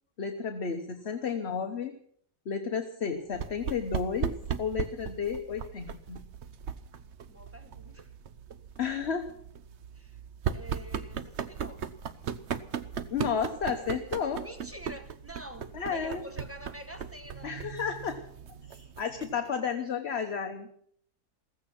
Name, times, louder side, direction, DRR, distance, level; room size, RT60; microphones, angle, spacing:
voice 1, 0.2-1.9 2.4-6.2 8.8-9.3 13.1-14.4 15.7-16.2 17.4-18.2 18.7-20.7, left 6 dB, 45° left, 6 dB, 1.2 m, -32 dB
sound 1, 3.3-19.5, right 7 dB, 55° right, 0.9 m, -38 dB
voice 2, 7.3-8.1 9.9-10.2 10.5-11.9 14.4-17.5, equal, 10° right, 7 dB, 1.3 m, -46 dB
16.0 x 15.0 x 5.9 m, 0.63 s
omnidirectional pair, 1.7 m